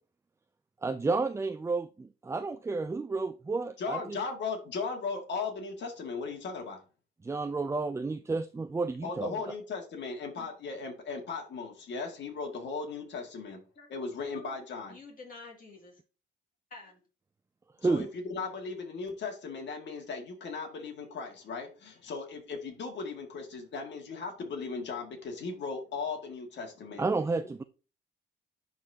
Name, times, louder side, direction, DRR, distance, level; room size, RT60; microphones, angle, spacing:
voice 1, 0.8-4.2 7.2-9.3 17.8-18.1 27.0-27.6, right 3 dB, 15° right, 0.3 m, -31 dB
voice 2, 3.8-6.8 9.0-13.6 13.9-15.0 17.8-27.1 27.4-27.5, left 4 dB, 65° left, 2.1 m, -37 dB
voice 3, 14.2-14.6 14.9-16.0 16.7-17.0, left 3 dB, 45° left, 2.5 m, -49 dB
11.0 x 4.1 x 2.8 m
cardioid pair, 90°, 20 cm